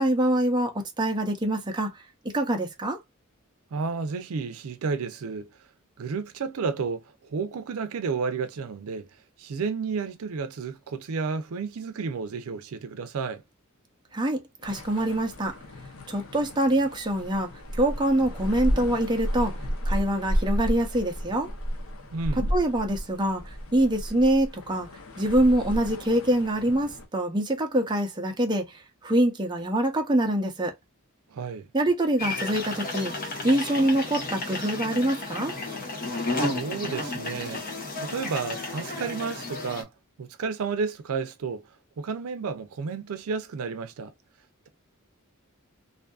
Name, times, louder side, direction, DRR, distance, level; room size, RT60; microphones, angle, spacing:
voice 1, 0.0-1.9 2.3-3.0 14.1-15.6 16.1-19.5 19.9-21.5 22.5-24.9 25.2-30.7 31.7-33.1 33.4-35.5, right 1 dB, 20° right, 0.5 m, -25 dB
voice 2, 3.7-5.5 6.0-9.1 9.4-13.4 22.1-22.4 31.3-31.7 36.4-37.6 38.0-39.9 40.2-41.6 42.0-44.1, right 5 dB, 85° right, 0.4 m, -31 dB
sound 1, 14.6-27.1, equal, 70° left, 0.7 m, -32 dB
sound 2, 32.2-39.8, left 2 dB, 45° left, 0.9 m, -32 dB
2.6 x 2.5 x 2.2 m
head